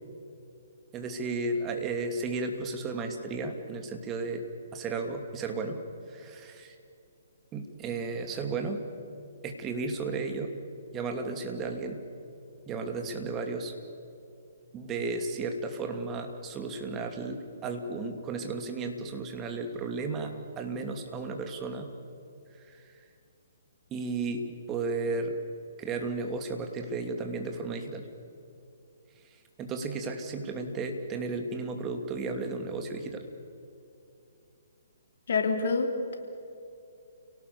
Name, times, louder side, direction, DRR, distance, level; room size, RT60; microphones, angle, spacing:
voice 1, 0.9-4.4 4.7-5.8 6.1-6.7 7.5-8.8 9.4-10.5 10.9-12.0 12.7-13.7 14.7-21.9 22.7-22.8 23.9-25.4 25.8-28.0 29.6-33.2, right 3 dB, 20° right, 4 dB, 2.8 m, -34 dB
voice 2, 35.3-36.1, left 4 dB, 60° left, 4 dB, 3.3 m, -27 dB
30.0 x 18.5 x 7.1 m, 2.7 s
figure-of-eight pair, 130°, 0 cm